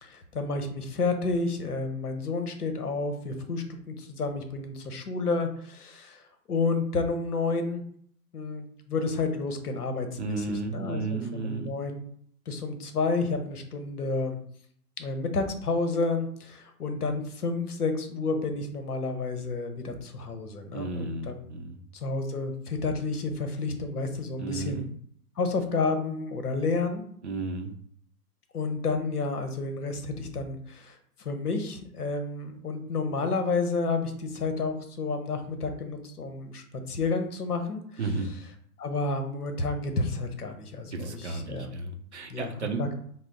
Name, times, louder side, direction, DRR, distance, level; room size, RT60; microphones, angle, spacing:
voice 1, 0.0-7.8 8.3-12.0 12.5-14.4 15.0-21.4 21.9-24.9 25.4-27.0 28.5-38.0 38.8-41.7 42.3-42.5 42.8-42.9, left 3 dB, 70° left, 6 dB, 0.8 m, -30 dB
voice 2, 10.2-11.7 20.7-21.8 24.4-24.9 27.2-27.7 38.0-38.3 40.9-42.9, right 3 dB, 50° right, 4 dB, 0.5 m, -33 dB
3.3 x 2.0 x 3.8 m, 0.62 s
figure-of-eight pair, 125°, 47 cm